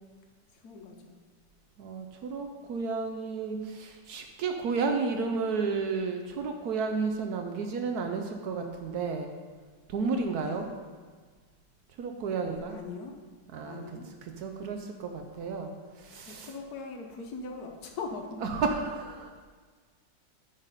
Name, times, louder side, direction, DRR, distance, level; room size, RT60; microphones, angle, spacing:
voice 1, 0.5-1.2 10.3-10.8 12.7-13.2 13.6-14.1 16.3-18.4, left 4 dB, 65° left, 3 dB, 1.2 m, -41 dB
voice 2, 1.8-9.3 9.9-10.7 12.0-12.8 13.5-13.8 14.2-15.7 16.0-16.5 18.4-19.3, right 4 dB, 70° right, 4 dB, 1.0 m, -32 dB
9.0 x 4.1 x 5.3 m, 1.5 s
omnidirectional pair, 1.9 m